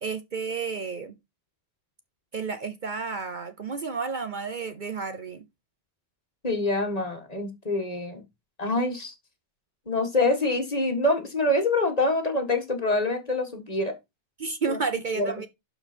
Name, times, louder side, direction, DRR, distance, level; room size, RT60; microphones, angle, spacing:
voice 1, 0.0-1.1 2.3-5.4 14.4-15.5, right 5 dB, 50° right, 0.9 m, -31 dB
voice 2, 6.4-8.2 8.6-9.1 9.9-13.9 14.7-14.8 15.2-15.3, left 2 dB, 35° left, 1.8 m, -25 dB
11.5 x 4.7 x 4.4 m
omnidirectional pair, 1.1 m